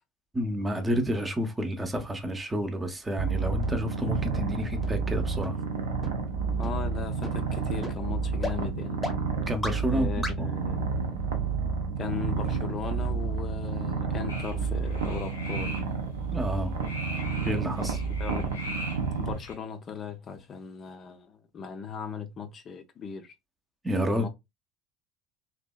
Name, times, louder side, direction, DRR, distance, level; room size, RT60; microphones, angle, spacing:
voice 1, 0.3-5.6 9.5-10.1 10.4-10.5 16.3-16.8 17.4-18.0 23.8-24.3, equal, 15° right, 0.6 m, -30 dB
Purr, 3.2-19.3, right 5 dB, 80° right, 0.5 m, -30 dB
sound 1, 3.6-3.7 4.2-4.3 4.8-4.9 5.4-5.5 6.0-6.1 6.6-6.7 7.2-7.3 7.8-7.9 8.4-8.5 9.0-9.1 9.6-9.7 10.2-10.3, left 2 dB, 10° left, 0.7 m, -33 dB
voice 2, 6.6-9.1 9.8-10.9 12.0-15.7 18.2-18.5 19.1-23.3 24.1-24.3, left 7 dB, 40° left, 0.4 m, -38 dB
sound 2, 14.3-19.5, left 1 dB, 90° left, 0.7 m, -41 dB
2.7 x 2.1 x 2.2 m
hypercardioid pair, 70°, 0 cm